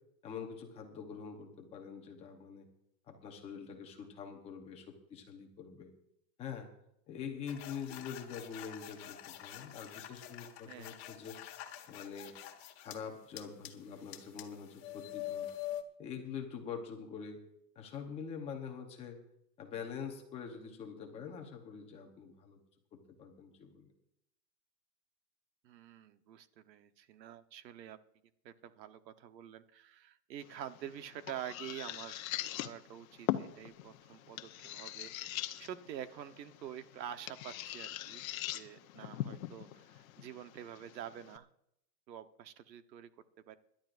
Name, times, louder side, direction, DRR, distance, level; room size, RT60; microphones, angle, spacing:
voice 1, 0.2-2.7 3.1-5.9 6.4-6.7 7.1-11.4 11.9-12.3 12.8-15.5 16.0-17.4 17.7-19.2 19.6-22.6 22.9-23.9, left 6 dB, 10° left, 2 dB, 0.9 m, -45 dB
sound 1, 7.5-13.0 13.4-15.8, left 12 dB, 40° left, 1.5 m, -46 dB
voice 2, 25.6-28.0 28.4-41.5 42.1-43.1 43.5-43.6, right 10 dB, 85° right, 10 dB, 1.2 m, -47 dB
sound 2, 30.4-41.4, left 13 dB, 55° left, 1.0 m, -42 dB
26.5 x 11.5 x 2.6 m, 0.77 s
supercardioid pair, 180°, 49 cm